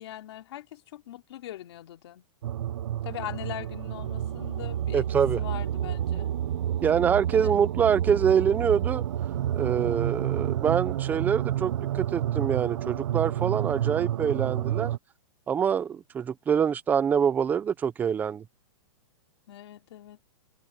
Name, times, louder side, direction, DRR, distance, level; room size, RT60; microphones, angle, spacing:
voice 1, 0.0-2.3 3.0-5.1 5.4-6.3 7.3-7.6 19.5-20.2, left 13 dB, 55° left, 3.3 m, -41 dB
sound 1, 2.4-15.0, right 11 dB, 60° right, 1.0 m, -29 dB
voice 2, 4.9-5.4 6.8-9.0 9.5-14.9 15.5-18.4, right 7 dB, 10° right, 0.8 m, -25 dB
hypercardioid pair, 170°, 17 cm